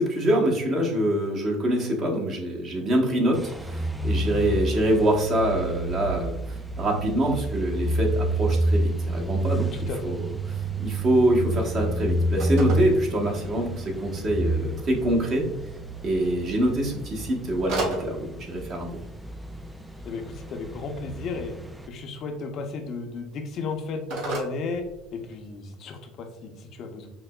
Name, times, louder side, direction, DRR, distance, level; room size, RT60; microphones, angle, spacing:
voice 1, 0.0-10.2 10.8-15.5 16.0-18.9, right 1 dB, 45° right, -1 dB, 1.1 m, -25 dB
sound 1, 3.3-21.9, right 1 dB, 5° right, 0.4 m, -29 dB
voice 2, 9.7-10.2 20.0-21.5 21.9-24.8 25.1-27.1, left 4 dB, 55° left, 4 dB, 0.6 m, -34 dB
Telephone, 12.2-25.5, right 2 dB, 70° right, 1.3 m, -39 dB
5.8 x 2.1 x 2.3 m, 0.90 s
supercardioid pair, 85°, 0 cm